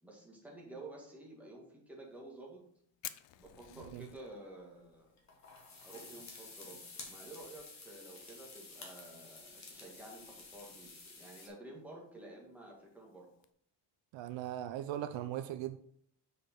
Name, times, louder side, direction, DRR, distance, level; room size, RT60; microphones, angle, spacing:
voice 1, 0.0-2.6 3.4-5.1 5.8-13.3, right 2 dB, 5° right, 1.7 m, -51 dB
Fire, 2.0-13.5, left 14 dB, 65° left, 0.6 m, -57 dB
sound 1, 3.4-4.2 5.2-11.5, left 3 dB, 35° left, 1.7 m, -52 dB
voice 2, 14.1-15.8, right 12 dB, 70° right, 0.6 m, -39 dB
6.7 x 4.9 x 4.5 m
cardioid pair, 170°, 47 cm